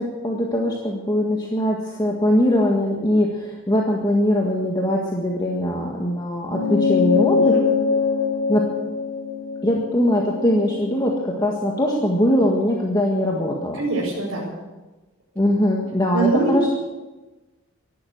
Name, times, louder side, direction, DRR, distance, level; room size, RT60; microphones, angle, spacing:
voice 1, 0.0-7.6 8.5-8.6 9.6-13.8 15.3-16.8, left 1 dB, 20° left, -1 dB, 1.7 m, -21 dB
sound 1, 6.5-11.3, left 5 dB, 75° left, 5.5 m, -23 dB
voice 2, 7.4-7.7 13.8-14.5 16.1-16.8, right 3 dB, 75° right, -8 dB, 5.1 m, -23 dB
14.5 x 11.5 x 7.9 m, 1.1 s
head